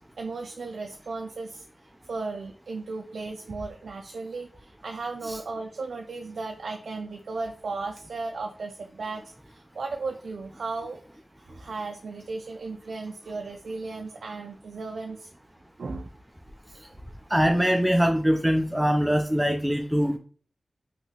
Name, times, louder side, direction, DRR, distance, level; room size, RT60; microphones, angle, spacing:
voice 1, 0.2-1.7 2.1-11.0 11.4-15.3 15.8-16.1, right 3 dB, 90° right, 2 dB, 0.3 m, -35 dB
voice 2, 17.3-20.2, equal, 5° right, 3 dB, 0.4 m, -23 dB
2.9 x 2.7 x 2.8 m, 0.42 s
cardioid pair, 50°, 0 cm